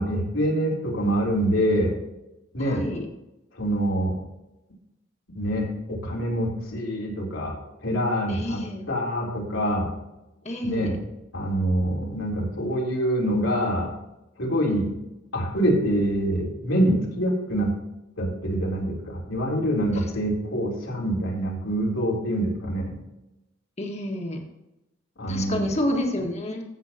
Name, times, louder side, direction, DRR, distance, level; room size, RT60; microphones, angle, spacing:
voice 1, 0.0-1.9 2.5-2.9 3.6-4.2 5.3-7.5 7.8-9.9 10.6-11.0 11.3-13.9 14.4-14.9 15.3-17.7 18.2-22.9 25.2-25.7, equal, 85° left, -3 dB, 3.4 m, -25 dB
voice 2, 2.6-3.1 8.3-8.9 10.4-10.9 19.9-20.1 23.8-24.4 25.3-26.6, left 1 dB, 35° left, 2 dB, 1.7 m, -29 dB
15.0 x 7.5 x 2.9 m, 0.94 s
head